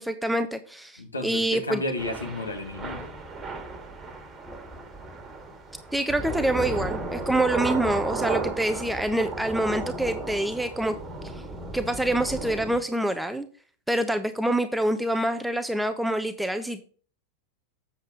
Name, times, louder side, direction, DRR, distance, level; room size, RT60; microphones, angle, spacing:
voice 1, 0.0-1.8 5.9-11.0 11.3-11.4 11.7-13.5 13.9-16.9, right 1 dB, 5° right, 9 dB, 0.6 m, -26 dB
voice 2, 1.0-3.1, left 2 dB, 80° left, 4 dB, 1.8 m, -32 dB
Thunder / Rain, 2.0-12.8, right 3 dB, 20° right, 1.6 m, -34 dB
7.8 x 7.3 x 3.8 m, 0.42 s
figure-of-eight pair, 90°, 0 cm